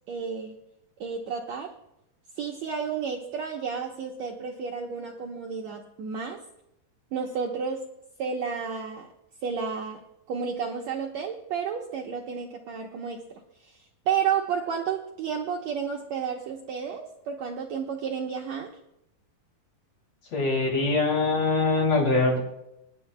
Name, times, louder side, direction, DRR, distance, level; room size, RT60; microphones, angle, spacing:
voice 1, 0.1-0.5 1.0-1.7 2.4-6.4 7.1-7.8 8.2-9.1 9.4-10.0 10.3-13.2 13.6-13.8 14.1-18.7, right 6 dB, 70° right, 0 dB, 1.8 m, -31 dB
voice 2, 20.3-22.4, left 3 dB, 50° left, 0 dB, 3.7 m, -23 dB
28.5 x 10.0 x 2.2 m, 0.83 s
omnidirectional pair, 4.1 m